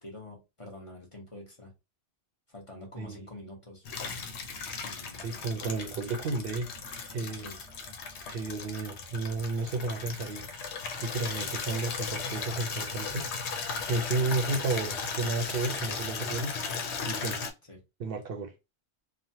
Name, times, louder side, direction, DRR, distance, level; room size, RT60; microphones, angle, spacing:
voice 1, 0.0-1.7 2.5-3.9 4.8-5.7 7.3-7.6 17.1-17.3 17.7-17.8, left 2 dB, 30° left, 1.0 m, -46 dB
voice 2, 3.0-3.3 5.2-6.7 7.1-7.5 8.3-10.4 11.0-17.4 18.0-18.5, right 3 dB, 65° right, 0.7 m, -33 dB
Water tap faucet / Liquid, 3.9-17.5, left 5 dB, 85° left, 1.0 m, -36 dB
3.1 x 2.1 x 2.7 m
omnidirectional pair, 1.1 m